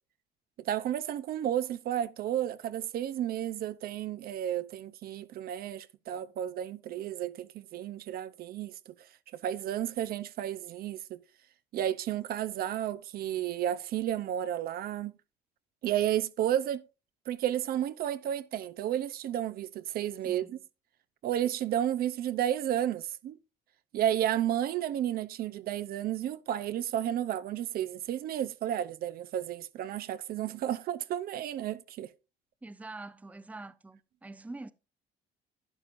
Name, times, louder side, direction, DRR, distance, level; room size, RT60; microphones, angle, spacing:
voice 1, 0.6-9.0 9.3-11.2 11.7-15.2 15.8-16.8 17.3-20.6 21.2-23.4 23.9-32.1, right 11 dB, 60° right, 0.6 m, -32 dB
voice 2, 32.6-34.7, right 2 dB, 10° right, 0.6 m, -45 dB
11.5 x 10.0 x 2.6 m
cardioid pair, 110°, 17 cm